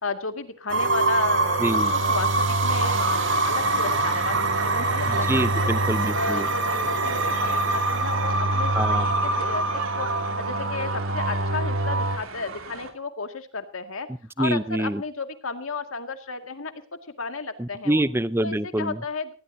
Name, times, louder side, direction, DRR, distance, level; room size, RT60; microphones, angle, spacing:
voice 1, 0.0-1.6 1.9-5.7 6.1-10.1 10.4-14.1 14.4-16.7 17.0-18.0 18.4-19.3, left 3 dB, 75° left, 7 dB, 2.1 m, -33 dB
sound 1, 0.7-12.2, right 2 dB, 60° right, 2.0 m, -24 dB
voice 2, 1.6-1.9 5.3-6.5 8.7-9.1 14.4-15.0 17.6-19.0, right 1 dB, 10° right, 15 dB, 0.6 m, -25 dB
Naked Bike Ride, 2.7-12.9, right 4 dB, 85° right, 3.0 m, -35 dB
19.5 x 16.5 x 2.8 m, 0.38 s
head